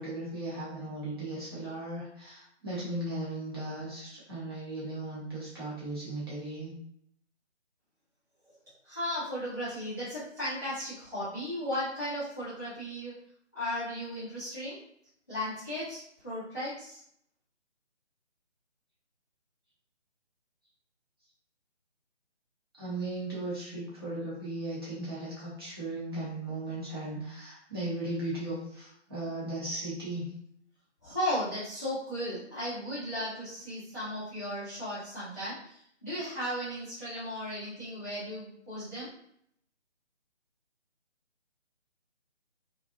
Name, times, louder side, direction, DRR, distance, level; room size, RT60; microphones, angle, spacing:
voice 1, 0.0-6.7 22.8-30.2, right 2 dB, 20° right, -9 dB, 0.8 m, -37 dB
voice 2, 8.8-13.1 13.5-14.8 15.3-17.0 31.0-39.1, equal, 15° left, -15 dB, 0.6 m, -35 dB
2.5 x 2.3 x 2.5 m, 0.69 s
figure-of-eight pair, 150°, 36 cm